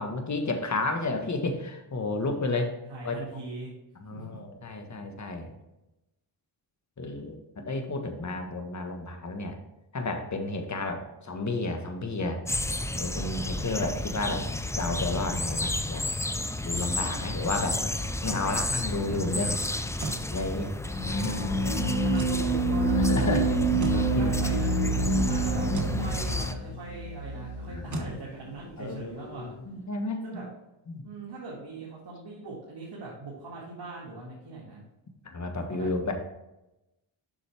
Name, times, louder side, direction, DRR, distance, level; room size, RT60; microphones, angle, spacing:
voice 1, 0.0-2.7 3.0-3.1 4.0-5.5 7.0-7.4 7.6-9.5 9.9-12.4 12.9-14.5 14.8-16.0 16.6-17.9 18.2-20.7 21.1-21.4 23.1-23.4 23.9-24.4 27.7-28.0 28.8-30.2 30.9-31.0 35.2-36.1, left 2 dB, 35° left, 5 dB, 1.5 m, -31 dB
voice 2, 2.9-3.7 4.1-4.4 21.5-23.5 23.9-29.5 30.2-30.5 31.0-34.8 35.7-35.9, right 2 dB, 50° right, -6 dB, 2.2 m, -41 dB
sound 1, 12.5-26.5, left 2 dB, 5° left, 0.5 m, -32 dB
sound 2, 19.7-20.3 22.1-22.4 23.8-24.1 25.7-26.0 27.9-28.2, right 3 dB, 35° right, 1.3 m, -35 dB
sound 3, 20.9-28.1, right 2 dB, 70° left, 1.5 m, -27 dB
7.5 x 6.2 x 3.5 m, 0.95 s
cardioid pair, 60°, 49 cm